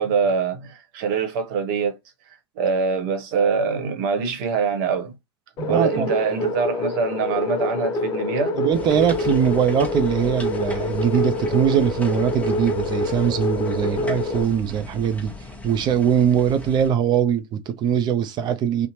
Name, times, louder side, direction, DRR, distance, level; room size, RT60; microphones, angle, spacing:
voice 1, 0.0-2.0 2.6-5.1 5.7-8.6, right 5 dB, 55° right, 0.9 m, -24 dB
sound 1, 5.6-14.4, left 2 dB, 30° left, 0.6 m, -26 dB
voice 2, 5.6-6.1 8.5-15.3 15.6-18.9, right 8 dB, 35° right, 0.4 m, -21 dB
sound 2, 8.7-16.9, left 2 dB, 10° left, 0.9 m, -38 dB
2.8 x 2.1 x 2.7 m
hypercardioid pair, 95°, 14 cm